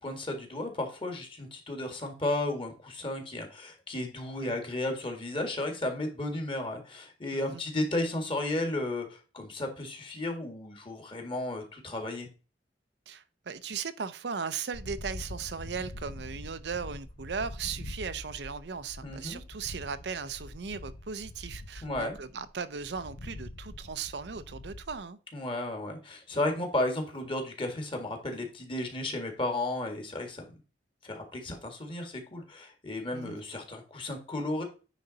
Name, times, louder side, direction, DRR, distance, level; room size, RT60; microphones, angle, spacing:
voice 1, 0.0-12.3 19.0-19.4 21.8-22.2 25.3-30.4 31.0-34.6, left 1 dB, 30° left, 1.8 m, -33 dB
voice 2, 7.3-7.6 13.1-25.2 33.1-33.4, right 6 dB, 70° right, 0.6 m, -37 dB
sound 1, 14.7-25.0, left 1 dB, 85° left, 1.0 m, -44 dB
9.3 x 3.9 x 3.9 m
head